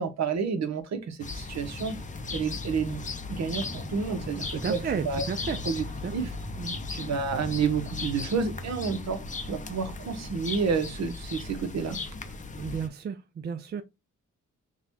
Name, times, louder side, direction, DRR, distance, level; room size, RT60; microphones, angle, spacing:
voice 1, 0.0-2.0 2.3-5.2 5.7-5.8 6.1-6.3 6.9-9.2 9.5-12.0, right 5 dB, 60° right, 0.9 m, -30 dB
sound 1, 1.2-12.9, left 3 dB, 25° left, 0.6 m, -37 dB
voice 2, 4.5-5.6 6.0-6.1 6.6-6.8 12.6-13.8, right 6 dB, 35° right, 0.4 m, -33 dB
5.8 x 2.3 x 2.9 m
cardioid pair, 95°, 30 cm